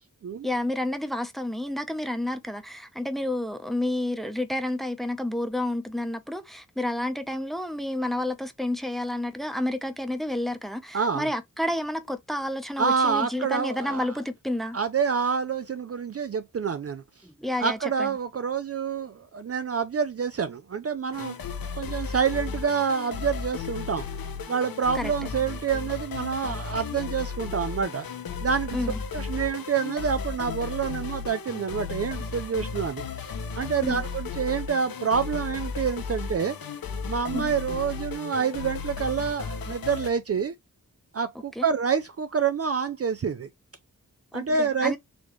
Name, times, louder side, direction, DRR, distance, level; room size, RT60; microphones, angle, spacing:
voice 1, 0.4-14.8 17.2-18.1 24.9-25.1 28.7-29.0 33.8-34.0 37.3-37.5 41.6-41.7 44.3-45.0, left 1 dB, ahead, 0.7 m, -30 dB
voice 2, 10.9-11.3 12.8-14.0 14.7-17.0 17.6-21.3 21.7-24.1 24.5-28.1 28.4-28.8 29.1-36.6 37.1-40.5 41.1-43.5 44.3-44.9, right 6 dB, 45° right, 0.4 m, -27 dB
sound 1, 21.1-40.1, left 5 dB, 90° left, 0.7 m, -34 dB
4.1 x 3.1 x 3.0 m
wide cardioid pair, 65°, 34 cm